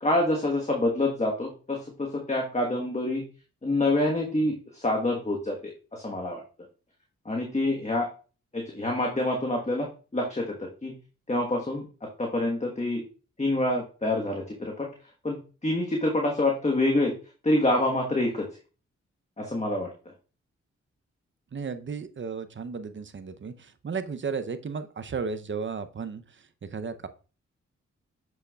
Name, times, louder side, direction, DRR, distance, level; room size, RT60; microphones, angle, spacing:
voice 1, 0.0-3.2 3.6-5.6 5.9-6.4 7.2-8.1 8.5-10.9 11.3-11.9 12.2-13.0 13.4-14.9 15.2-17.1 17.4-18.4 19.4-19.9, left 1 dB, 25° left, 0 dB, 1.3 m, -26 dB
voice 2, 21.5-26.2 26.7-27.1, right 5 dB, 40° right, 11 dB, 0.7 m, -34 dB
6.6 x 6.2 x 2.3 m, 0.36 s
cardioid pair, 50°, 29 cm